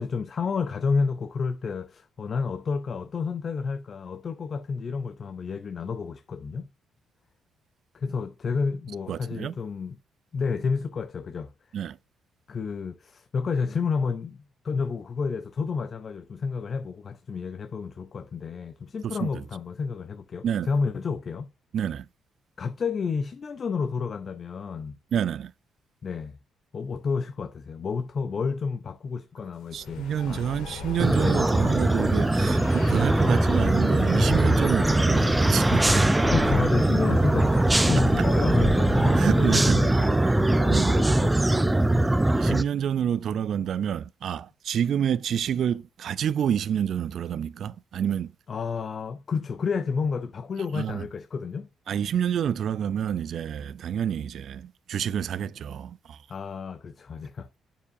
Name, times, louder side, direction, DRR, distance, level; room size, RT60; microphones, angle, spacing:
voice 1, 0.0-6.7 7.9-10.0 10.3-11.5 12.5-21.5 22.6-25.0 26.0-26.4 26.7-30.5 31.2-31.4 36.3-41.7 48.5-51.7 56.3-57.5, left 5 dB, 45° left, 0.5 m, -30 dB
voice 2, 9.1-9.6 11.7-12.0 19.0-19.4 20.4-20.7 21.7-22.0 25.1-25.5 29.7-36.0 39.2-39.8 40.7-40.9 42.3-48.3 50.7-51.0 51.9-56.2, right 9 dB, 65° right, 0.4 m, -28 dB
sound 1, 29.6-40.5, left 3 dB, 90° left, 2.2 m, -36 dB
sound 2, 31.0-42.6, right 1 dB, 10° right, 0.5 m, -21 dB
7.2 x 7.0 x 2.6 m
cardioid pair, 90°, 0 cm